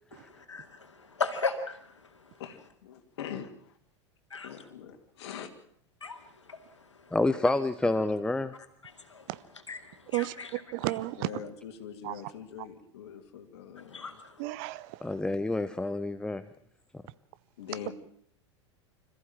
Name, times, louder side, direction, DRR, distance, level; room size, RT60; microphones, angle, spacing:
voice 1, 0.1-2.4 4.3-4.7 6.0-7.2 8.0-8.1 8.5-11.0 13.8-14.4, left 4 dB, 85° left, 2.3 m, -39 dB
voice 2, 2.4-3.8 4.4-5.5 11.2-14.2 17.6-17.9, left 8 dB, 65° left, 2.6 m, -43 dB
voice 3, 7.1-8.5 15.0-16.4, left 2 dB, 5° left, 0.8 m, -28 dB
voice 4, 10.7-11.3 12.0-12.1 14.4-15.1, right 19 dB, 50° right, 0.9 m, -32 dB
26.0 x 14.5 x 7.5 m
figure-of-eight pair, 85°, 15 cm